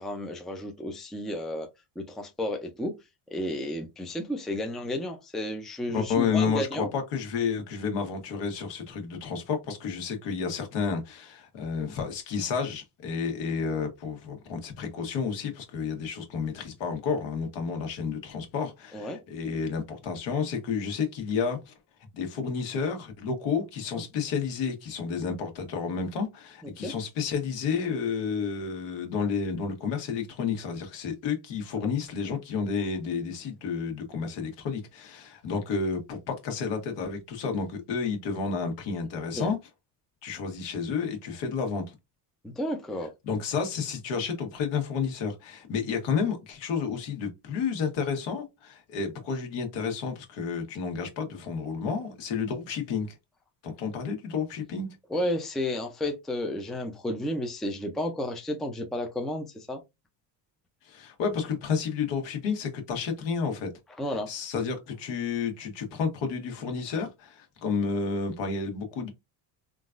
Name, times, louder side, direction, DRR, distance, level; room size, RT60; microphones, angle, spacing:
voice 1, 0.0-1.7 2.0-2.9 3.3-6.9 18.9-19.2 23.9-24.0 26.6-26.9 39.3-39.5 42.4-43.1 55.1-59.8 64.0-64.3, left 1 dB, ahead, 0.5 m, -32 dB
voice 2, 5.9-21.7 22.1-39.6 40.2-41.9 43.3-53.2 53.6-54.9 60.8-63.7 64.3-69.1, left 5 dB, 65° left, 1.3 m, -31 dB
3.8 x 2.4 x 2.5 m
cardioid pair, 110°, 46 cm